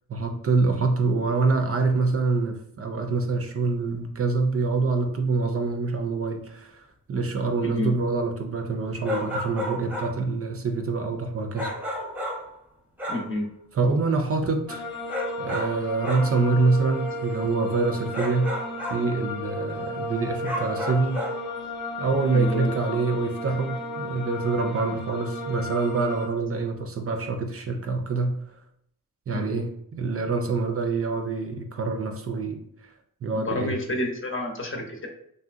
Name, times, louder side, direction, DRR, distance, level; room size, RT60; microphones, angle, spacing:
voice 1, 0.1-11.7 13.7-14.9 15.4-18.5 18.9-21.2 22.0-28.4 29.3-32.9 33.2-33.7, right 3 dB, 45° right, 6 dB, 0.4 m, -25 dB
voice 2, 7.6-7.9 13.1-13.5 22.3-23.0 29.3-29.6 33.4-35.1, left 1 dB, 35° left, 1 dB, 0.8 m, -30 dB
sound 1, 9.0-10.2 11.5-12.6 13.0-13.3 15.1-16.4 18.1-19.1 20.4-21.4, left 1 dB, 5° right, 0.7 m, -32 dB
sound 2, 14.7-26.3, left 1 dB, 70° left, 0.7 m, -34 dB
3.2 x 2.7 x 2.4 m, 0.72 s
cardioid pair, 70°, 35 cm